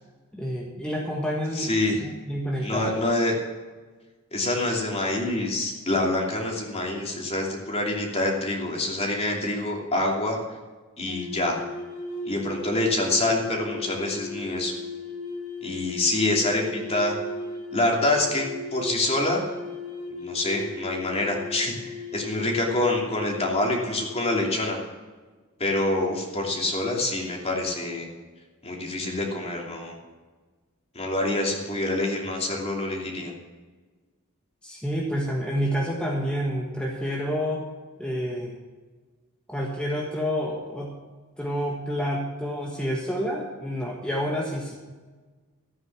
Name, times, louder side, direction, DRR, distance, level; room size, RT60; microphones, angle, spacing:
voice 1, 0.3-1.7 2.0-3.0 34.6-37.6 38.0-38.6 39.5-40.9 41.4-44.7, equal, 5° left, -3 dB, 1.5 m, -29 dB
voice 2, 1.5-2.0 2.6-3.3 4.3-10.4 11.0-11.6 12.2-14.7 15.6-17.2 17.7-19.4 20.1-24.8 25.6-28.1 28.6-29.9 30.9-33.3, left 2 dB, 30° left, 0 dB, 2.9 m, -26 dB
sound 1, 11.1-23.8, left 3 dB, 85° left, 2.1 m, -36 dB
14.0 x 9.4 x 6.1 m, 1.3 s
head